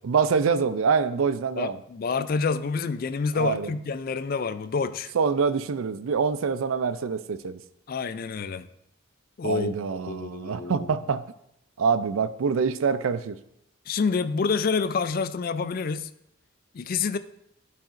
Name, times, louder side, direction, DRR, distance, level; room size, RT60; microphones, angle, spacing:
voice 1, 0.0-1.8 3.4-3.7 5.1-7.6 9.4-11.3 11.8-13.4, right 5 dB, 80° right, 0.4 m, -25 dB
voice 2, 1.6-5.1 7.9-8.7 9.4-9.7 10.1-10.9 13.9-16.1 16.7-17.2, left 5 dB, 45° left, 0.3 m, -28 dB
11.0 x 5.8 x 2.5 m
head